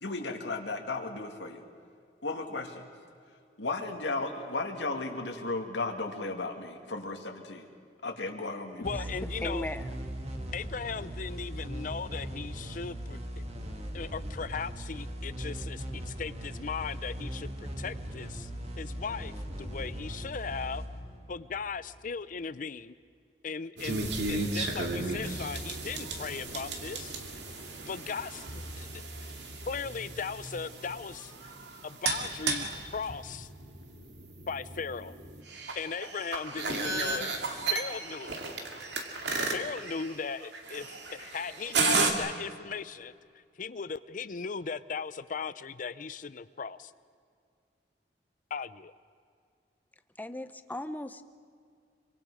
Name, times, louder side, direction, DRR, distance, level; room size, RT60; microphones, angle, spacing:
voice 1, 0.0-1.6 2.2-2.8 3.6-7.6 8.0-8.9, left 3 dB, 85° left, 3 dB, 2.2 m, -35 dB
voice 2, 8.8-9.7 10.5-13.4 13.9-18.5 18.8-20.8 21.3-22.9 23.4-27.2 27.8-29.3 29.7-31.3 31.8-32.7 32.9-33.5 34.5-35.1 35.7-37.3 37.7-38.4 38.7-38.8 39.4-46.9 48.5-48.9, left 5 dB, 45° left, 15 dB, 0.5 m, -38 dB
sound 1, 8.8-22.1, equal, 35° right, 2.1 m, -39 dB
voice 3, 9.4-9.9 50.2-51.2, left 1 dB, 10° left, 11 dB, 0.8 m, -37 dB
sound 2, 23.8-42.1, right 3 dB, 70° right, 2.5 m, -34 dB
26.5 x 24.5 x 5.0 m, 2.2 s
head